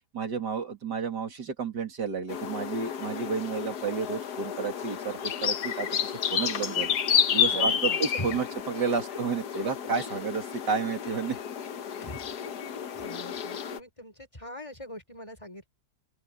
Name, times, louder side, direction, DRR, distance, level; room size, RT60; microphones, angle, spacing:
voice 1, 0.1-6.9 7.3-11.4 12.0-12.1, right 5 dB, 90° right, 3.3 m, -31 dB
sound 1, 2.3-13.8, left 8 dB, 70° left, 1.6 m, -30 dB
voice 2, 7.5-8.3 8.9-9.0 9.5-9.6 12.0-12.2 12.9-15.7, left 1 dB, 20° left, 4.6 m, -41 dB
open air
omnidirectional pair, 1.8 m